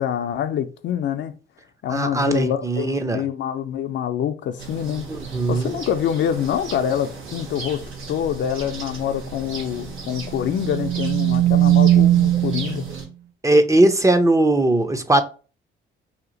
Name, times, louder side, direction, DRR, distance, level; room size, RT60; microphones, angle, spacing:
voice 1, 0.0-1.3 1.8-5.1 5.5-7.8 8.1-12.9, left 9 dB, 65° left, 0.5 m, -25 dB
voice 2, 1.9-3.2 5.3-5.8 13.4-15.2, right 2 dB, 15° right, 0.5 m, -19 dB
sound 1, 4.6-13.1, right 4 dB, 90° right, 1.2 m, -36 dB
sound 2, 10.3-12.9, right 13 dB, 65° right, 0.5 m, -18 dB
2.8 x 2.4 x 3.9 m
cardioid pair, 90°, 20 cm